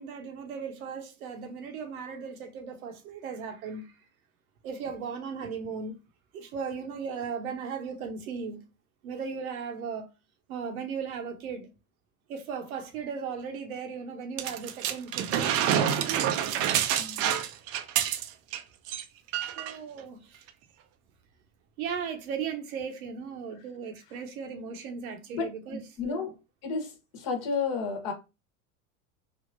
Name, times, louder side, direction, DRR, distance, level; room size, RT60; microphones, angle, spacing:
voice 1, 0.0-3.9 4.6-5.9 6.3-8.6 9.0-10.1 10.5-11.7 12.3-16.4 19.6-20.4 21.8-26.2, right 6 dB, 75° right, 0.8 m, -37 dB
sound 1, 14.4-18.6 18.9-19.0 19.3-19.8 20.5-20.6, right 9 dB, 35° right, 0.4 m, -27 dB
voice 2, 17.0-17.3 25.3-26.3 26.6-28.1, left 5 dB, 50° left, 1.1 m, -32 dB
3.4 x 2.5 x 2.5 m
hypercardioid pair, 80°, 43 cm